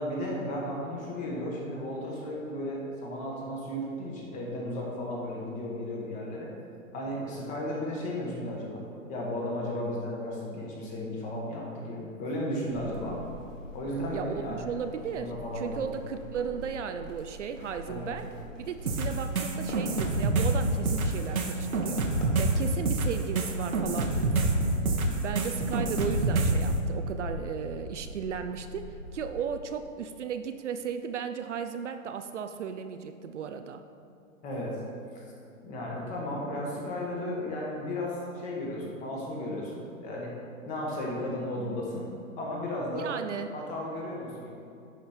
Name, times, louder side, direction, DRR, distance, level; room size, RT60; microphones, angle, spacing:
voice 1, 0.0-6.5 6.9-8.8 9.1-13.2 13.7-14.7 15.1-15.9 17.8-18.1 34.4-34.8 35.1-35.2 35.6-40.3 40.6-42.1 42.4-43.1 43.5-44.5, left 1 dB, 20° left, -3 dB, 1.5 m, -34 dB
sound 1, 12.7-29.5, equal, 65° left, 1.8 m, -43 dB
voice 2, 14.1-18.3 18.6-22.0 22.4-24.5 25.2-33.8 42.9-43.5, right 7 dB, 60° right, 8 dB, 0.5 m, -35 dB
sound 2, 18.9-26.7, right 2 dB, 85° right, 1.3 m, -27 dB
11.0 x 5.2 x 4.4 m, 2.7 s
hypercardioid pair, 145°, 41 cm